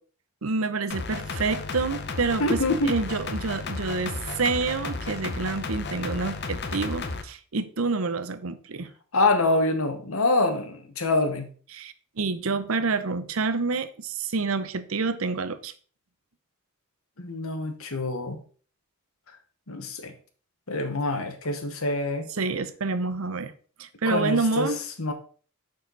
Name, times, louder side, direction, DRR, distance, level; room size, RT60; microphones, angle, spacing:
voice 1, 0.4-8.9 11.7-15.7 22.3-23.5 23.8-24.8, right 4 dB, 75° right, 0.7 m, -28 dB
sound 1, 0.9-7.2, left 3 dB, 50° left, 0.8 m, -33 dB
voice 2, 2.4-2.9 9.1-11.5 17.2-18.4 19.7-20.1 20.7-22.3 24.0-24.7 25.0-25.1, left 2 dB, 80° left, 1.3 m, -25 dB
6.7 x 6.6 x 4.0 m
head